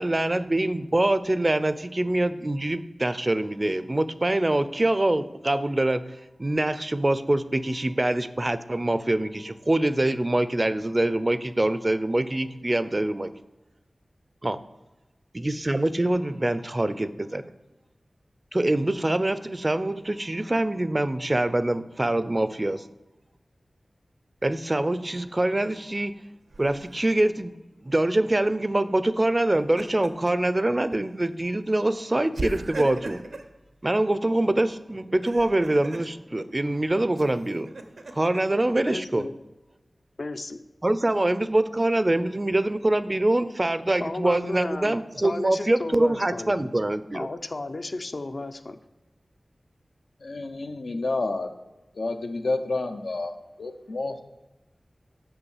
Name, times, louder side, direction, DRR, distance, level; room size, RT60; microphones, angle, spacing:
voice 1, 0.0-6.0 6.4-13.3 14.4-14.6 15.3-17.5 18.5-22.8 24.4-26.1 26.6-27.5 27.8-33.2 33.8-37.7 38.1-39.3 40.8-47.3, right 1 dB, 30° right, 13 dB, 0.5 m, -24 dB
Laughter, 26.5-27.1 29.3-30.3 30.7-30.9 32.3-33.5 35.0-36.1 37.1-38.4, right 2 dB, 80° right, 0.9 m, -38 dB
voice 2, 38.9-39.3 40.2-40.6 44.0-45.0 45.2-46.8 47.1-48.8, left 2 dB, 55° left, 8 dB, 0.6 m, -34 dB
voice 3, 50.2-51.5 51.9-54.2, left 2 dB, 85° left, 5 dB, 0.8 m, -30 dB
6.8 x 5.7 x 7.2 m, 1.1 s
wide cardioid pair, 80°, 0 cm